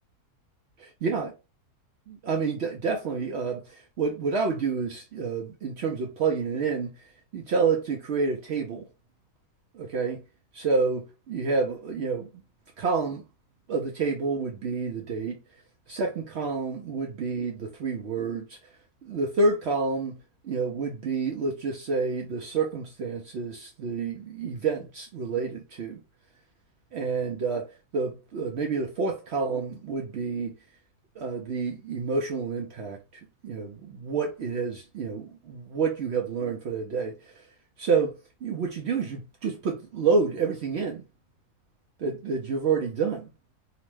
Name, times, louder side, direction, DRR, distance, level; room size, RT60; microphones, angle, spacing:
voice 1, 1.0-1.3 2.1-8.9 9.7-10.2 10.5-12.3 12.8-13.2 13.7-15.4 15.9-18.6 19.0-20.2 20.4-26.0 26.9-27.7 27.9-30.6 31.2-37.5 37.8-38.1 38.4-41.0 42.0-43.3, right 4 dB, 70° right, 0.6 m, -29 dB
2.9 x 2.1 x 3.0 m
omnidirectional pair, 1.6 m